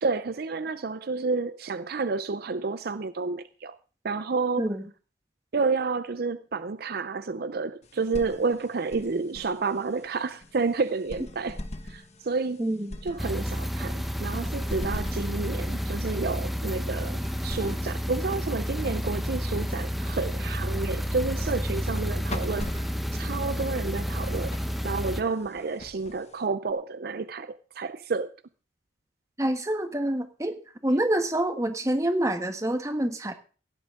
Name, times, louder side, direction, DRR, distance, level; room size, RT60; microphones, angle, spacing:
voice 1, 0.0-3.8 4.0-4.6 5.5-12.6 13.0-22.7 23.1-24.5 24.8-28.3, right 4 dB, 55° right, 0.5 m, -30 dB
sound 1, 7.8-26.7, left 1 dB, 35° left, 1.3 m, -44 dB
voice 2, 12.6-13.0 29.4-30.6 30.8-33.3, right 1 dB, 15° right, 1.3 m, -27 dB
sound 2, 13.2-25.2, equal, ahead, 0.8 m, -30 dB
16.5 x 11.5 x 3.7 m
head